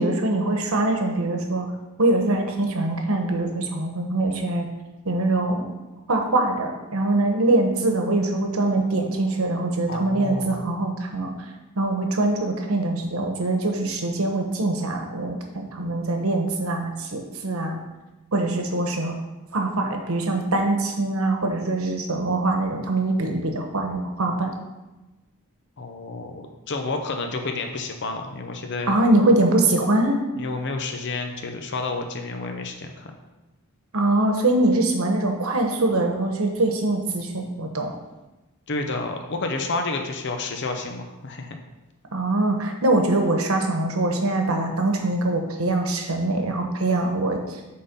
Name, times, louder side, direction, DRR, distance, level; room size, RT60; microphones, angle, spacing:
voice 1, 0.0-1.7 2.0-4.6 5.0-5.6 6.1-11.3 11.8-17.8 18.3-19.1 19.5-24.5 28.9-30.2 33.9-37.9 42.1-47.6, right 2 dB, 70° right, 3 dB, 1.1 m, -23 dB
voice 2, 9.9-10.6 25.8-28.9 30.4-33.1 38.7-41.6, left 3 dB, 50° left, 4 dB, 0.7 m, -30 dB
8.3 x 3.8 x 5.2 m, 1.1 s
head